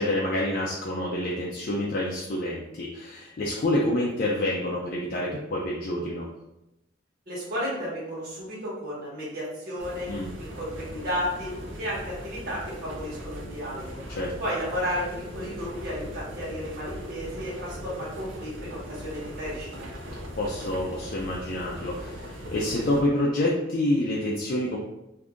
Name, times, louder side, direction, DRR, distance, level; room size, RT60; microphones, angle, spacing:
voice 1, 0.0-6.3 10.1-10.3 14.1-14.3 20.4-24.8, left 1 dB, 50° left, -4 dB, 0.4 m, -27 dB
voice 2, 7.3-10.1 10.4-11.5 11.8-14.0 14.4-19.9, equal, 50° right, -8 dB, 1.3 m, -33 dB
sound 1, 9.8-23.0, equal, 80° right, 0.6 m, -39 dB
2.6 x 2.4 x 3.5 m, 0.90 s
head